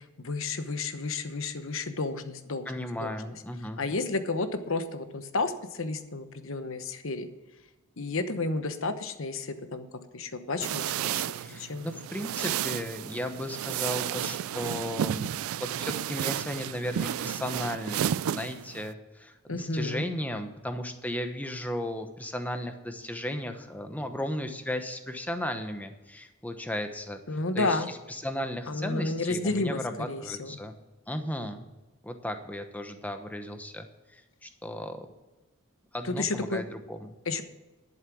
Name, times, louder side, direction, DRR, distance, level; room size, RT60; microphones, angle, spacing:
voice 1, 0.0-2.7 3.0-3.1 3.8-7.3 8.0-9.9 10.1-10.8 11.1-11.9 19.5-20.1 27.3-27.9 28.7-30.6 36.0-36.6 37.3-37.4, left 3 dB, 65° left, 9 dB, 1.0 m, -31 dB
voice 2, 2.7-3.8 11.4-15.3 15.6-27.2 27.5-30.7 31.1-31.6 32.0-33.9 34.1-35.1 35.9-37.1, left 1 dB, 5° left, 7 dB, 1.0 m, -35 dB
sound 1, 10.6-18.9, right 10 dB, 70° right, 0.3 m, -32 dB
11.5 x 7.4 x 6.2 m, 1.1 s
head